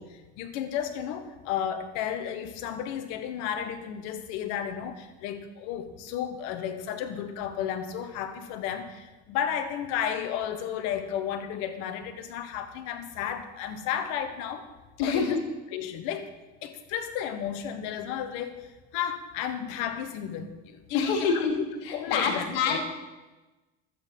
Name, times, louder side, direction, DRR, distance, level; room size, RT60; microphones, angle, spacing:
voice 1, 0.0-14.7 15.0-15.4 15.7-16.3 16.6-21.6 21.9-22.8, left 9 dB, 70° left, 9 dB, 1.5 m, -33 dB
voice 2, 15.0-15.4 20.9-21.5 22.1-22.8, left 5 dB, 85° left, 2 dB, 2.6 m, -25 dB
12.0 x 8.8 x 5.5 m, 1.1 s
supercardioid pair, 110°, 29 cm